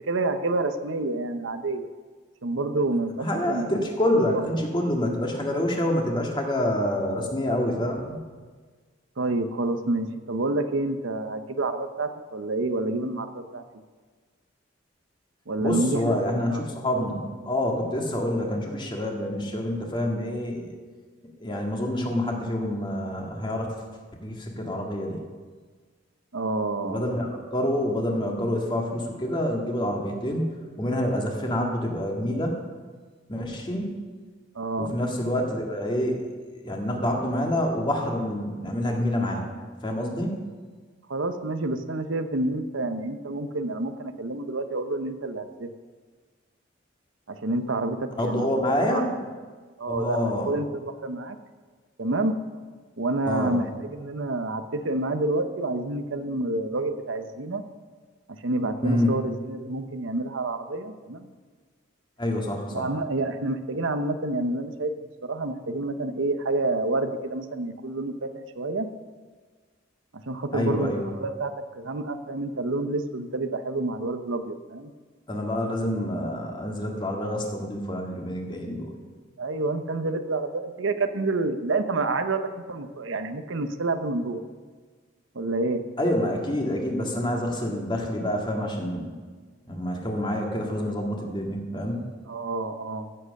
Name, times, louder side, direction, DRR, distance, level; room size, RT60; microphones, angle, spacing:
voice 1, 0.1-1.9 2.4-3.8 4.3-4.4 9.2-13.6 15.5-16.6 17.0-17.1 26.3-27.0 34.5-34.9 41.1-45.7 47.3-49.0 49.8-51.4 52.0-52.3 53.0-57.6 58.4-61.3 62.7-64.9 65.2-68.3 68.6-68.9 70.1-74.9 79.4-84.4 85.3-85.8 92.3-93.1, right 2 dB, 85° right, 8 dB, 0.9 m, -28 dB
voice 2, 3.2-8.2 15.6-20.7 21.4-23.7 24.2-25.2 26.9-30.5 30.8-32.6 33.3-34.0 34.8-36.3 36.6-39.4 39.8-40.4 48.2-49.1 49.9-50.5 53.3-53.6 58.8-59.2 62.2-62.9 70.5-71.0 75.3-79.0 86.0-89.1 89.7-92.1, left 1 dB, 25° left, 1 dB, 1.9 m, -27 dB
15.0 x 7.8 x 6.5 m, 1.5 s
head